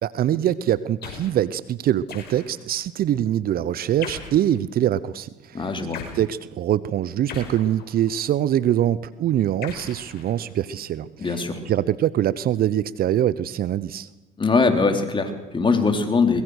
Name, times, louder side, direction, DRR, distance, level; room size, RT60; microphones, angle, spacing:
voice 1, 0.0-5.6 6.1-11.4 11.7-14.1, right 11 dB, 50° right, 17 dB, 0.9 m, -23 dB
sound 1, 1.0-1.4 2.1-2.7 4.0-4.5 5.9-6.2 7.3-8.2 9.6-10.7, left 6 dB, 55° left, 5.5 m, -38 dB
voice 2, 5.5-6.0 11.2-11.6 14.4-16.4, left 4 dB, 25° left, 5 dB, 3.9 m, -21 dB
22.5 x 21.0 x 6.5 m, 1.0 s
hypercardioid pair, 70°, 20 cm